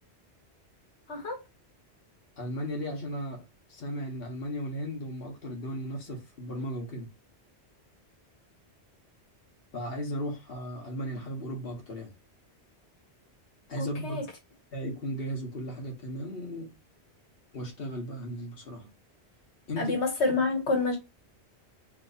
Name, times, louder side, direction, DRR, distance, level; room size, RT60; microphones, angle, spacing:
voice 1, 2.4-7.1 9.7-12.1 13.7-14.2 14.7-16.7 17.5-18.9 19.7-19.9, equal, 60° left, 1.6 m, -36 dB
voice 2, 13.8-14.2 19.8-21.0, left 3 dB, 90° left, 1.7 m, -28 dB
3.5 x 3.0 x 3.9 m
omnidirectional pair, 1.1 m